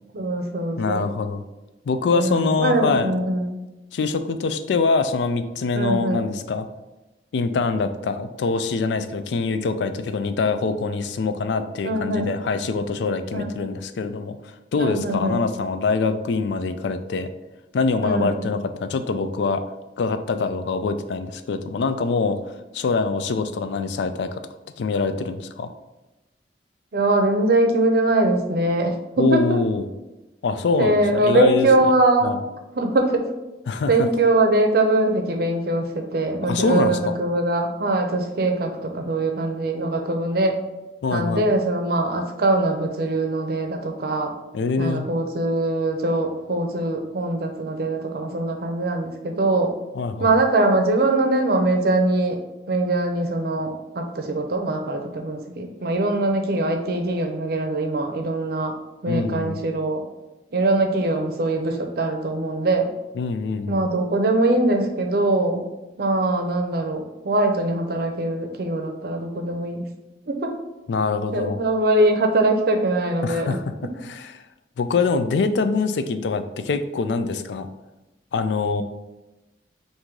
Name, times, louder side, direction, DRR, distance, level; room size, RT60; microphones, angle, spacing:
voice 1, 0.1-1.1 2.1-3.6 5.7-6.3 11.8-12.3 13.3-13.5 14.8-15.5 18.0-18.4 26.9-29.6 30.8-32.3 32.8-33.3 33.9-40.6 41.1-44.3 44.8-49.8 50.2-52.4 52.7-58.7 59.0-60.0 60.5-62.9 63.7-65.7 66.0-69.9 70.3-70.5 71.3-73.5, right 2 dB, 60° right, 4 dB, 0.6 m, -22 dB
voice 2, 0.8-1.4 1.9-3.1 3.9-6.7 7.3-14.4 14.7-17.3 17.7-19.6 20.0-22.4 22.7-24.4 24.8-25.7 29.2-29.9 30.4-31.7 32.2-32.4 33.7-34.1 36.4-37.1 41.0-41.4 44.5-45.1 49.9-50.3 59.0-59.6 63.2-63.8 70.9-71.6 73.2-73.6 74.0-74.3 74.8-77.7 78.3-78.8, left 4 dB, 75° left, 10 dB, 0.4 m, -24 dB
4.6 x 2.6 x 3.7 m, 1.0 s
head